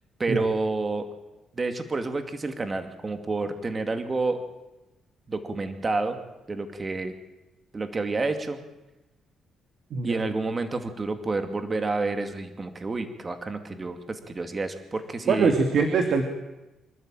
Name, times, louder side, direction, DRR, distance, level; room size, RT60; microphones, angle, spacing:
voice 1, 0.2-1.1 1.5-4.4 5.3-6.2 6.5-7.1 7.7-8.6 10.0-15.6, right 3 dB, 30° right, 7 dB, 2.4 m, -29 dB
voice 2, 15.3-16.2, right 5 dB, 60° right, 5 dB, 2.4 m, -23 dB
25.5 x 12.5 x 9.2 m, 1.0 s
cardioid pair, 90°, 0 cm